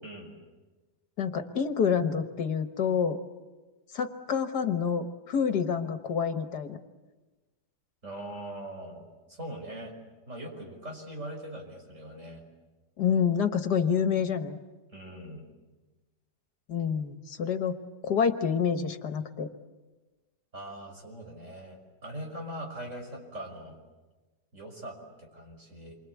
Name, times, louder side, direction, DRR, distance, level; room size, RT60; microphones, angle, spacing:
voice 1, 0.0-0.3 8.0-9.9 10.3-12.4 14.9-15.5 20.5-23.8 24.5-25.9, right 1 dB, 45° right, 1 dB, 6.3 m, -41 dB
voice 2, 1.2-3.2 3.9-6.8 13.0-14.6 16.7-17.8 18.0-19.5, left 7 dB, 75° left, 8 dB, 1.9 m, -27 dB
28.5 x 24.5 x 8.4 m, 1.2 s
omnidirectional pair, 1.8 m